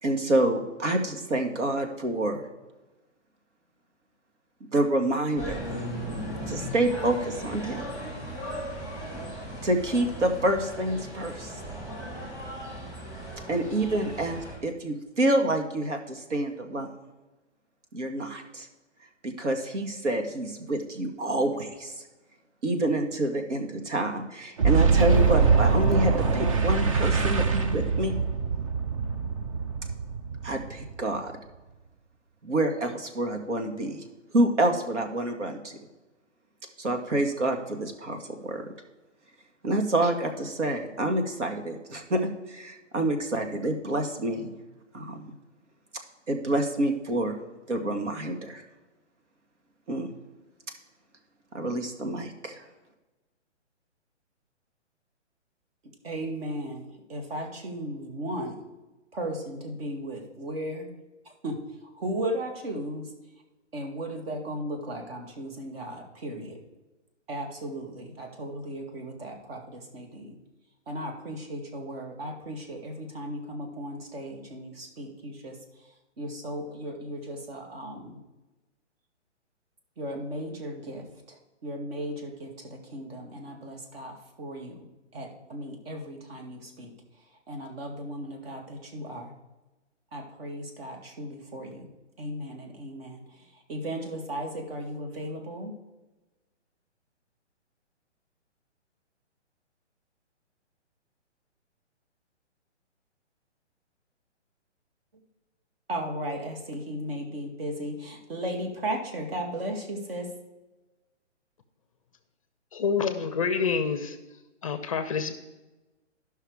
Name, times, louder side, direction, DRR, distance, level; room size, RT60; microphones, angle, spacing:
voice 1, 0.0-2.5 4.7-5.6 6.5-7.8 9.6-11.5 13.5-16.9 17.9-18.7 19.2-21.9 22.6-28.2 30.4-31.3 32.4-34.0 34.3-35.8 36.8-38.7 39.6-44.6 44.9-45.2 46.3-47.4 47.7-48.6 49.9-50.1 51.5-52.6, right 1 dB, 80° right, 5 dB, 1.8 m, -27 dB
sound 1, 5.4-14.6, equal, 10° right, 1.9 m, -37 dB
Boom, 24.6-31.2, right 5 dB, 30° right, 0.5 m, -23 dB
voice 2, 56.0-58.6 59.1-60.9 61.4-61.6 62.0-63.1 63.7-66.6 67.3-70.4 70.9-75.6 76.2-78.2 80.0-81.1 81.6-84.9 85.1-86.9 87.5-89.3 90.1-91.9 92.2-93.2 93.7-95.7 105.9-110.3, right 1 dB, 55° right, 3 dB, 2.2 m, -36 dB
voice 3, 112.7-114.2 114.6-115.3, left 6 dB, 30° left, 10 dB, 0.5 m, -27 dB
13.0 x 5.7 x 4.8 m, 1.1 s
hypercardioid pair, 150°, 36 cm